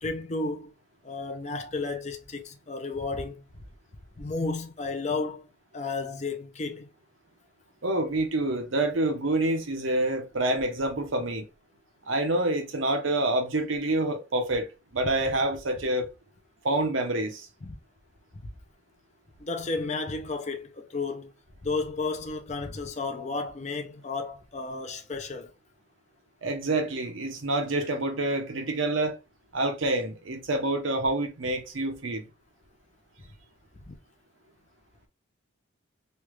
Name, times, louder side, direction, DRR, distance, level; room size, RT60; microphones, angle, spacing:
voice 1, 0.0-0.7 1.0-3.4 4.2-5.5 5.7-6.9 15.0-15.1 17.6-17.8 19.4-21.3 21.6-25.5 33.9-34.0, left 3 dB, 35° left, 0.5 m, -32 dB
voice 2, 7.8-11.5 12.1-14.7 14.9-16.1 16.6-17.5 26.4-29.2 29.5-32.2, right 2 dB, 80° right, 0.8 m, -27 dB
3.2 x 2.4 x 3.1 m
head